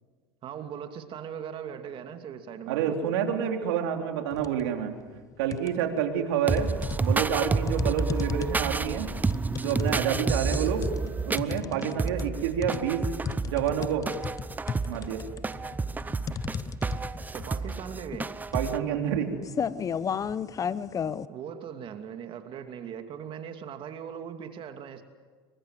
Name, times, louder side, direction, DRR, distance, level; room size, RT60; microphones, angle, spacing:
voice 1, 0.4-3.0 10.2-10.5 17.3-18.3 21.0-25.0, right 8 dB, 45° right, 7 dB, 2.6 m, -40 dB
voice 2, 2.7-4.9 5.4-9.1 9.6-10.8 11.2-13.1 13.5-14.1 14.9-15.2 18.5-19.4, right 8 dB, 75° right, 4 dB, 3.6 m, -28 dB
sound 1, 4.3-4.7 5.1-6.0 6.6-21.3, left 7 dB, 25° left, 0.8 m, -34 dB
sound 2, 6.5-18.8, right 4 dB, 15° right, 0.8 m, -30 dB
26.5 x 24.0 x 7.8 m, 1.5 s
supercardioid pair, 105°, 13 cm